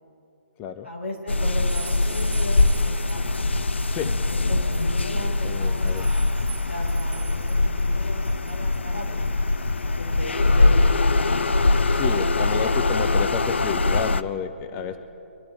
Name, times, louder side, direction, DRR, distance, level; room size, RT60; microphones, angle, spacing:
voice 1, 0.8-3.2 4.3-6.1 6.7-9.2 9.8-11.3 14.7-15.0, left 1 dB, 85° left, -2 dB, 4.3 m, -36 dB
sound 1, 1.3-14.2, left 2 dB, 70° left, 0.5 m, -22 dB
sound 2, 1.7-12.1, right 13 dB, 30° right, 2.1 m, -47 dB
voice 2, 5.2-6.1 11.9-15.0, left 7 dB, 20° left, 9 dB, 0.5 m, -31 dB
24.0 x 11.5 x 3.9 m, 2.8 s
figure-of-eight pair, 135°, 7 cm